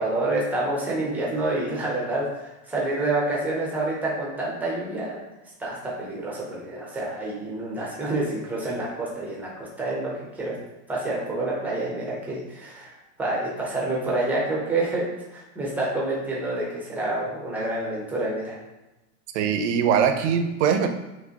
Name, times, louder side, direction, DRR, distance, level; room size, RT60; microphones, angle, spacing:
voice 1, 0.0-5.2 5.6-10.1 10.4-10.6 10.9-12.9 13.2-18.6, right 2 dB, 5° right, -4 dB, 0.5 m, -28 dB
voice 2, 19.3-20.9, right 7 dB, 55° right, 6 dB, 0.6 m, -21 dB
5.2 x 2.9 x 2.8 m, 1.0 s
supercardioid pair, 160°, 43 cm